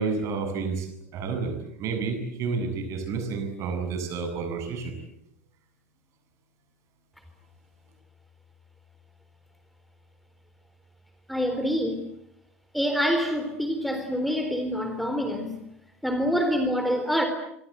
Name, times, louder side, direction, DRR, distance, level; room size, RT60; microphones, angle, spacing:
voice 1, 0.0-4.9, right 4 dB, 40° right, 7 dB, 7.9 m, -30 dB
voice 2, 11.3-12.0 12.7-15.6 16.0-17.3, equal, ahead, 7 dB, 3.8 m, -26 dB
26.5 x 25.0 x 8.2 m, 0.75 s
figure-of-eight pair, 80°, 7 cm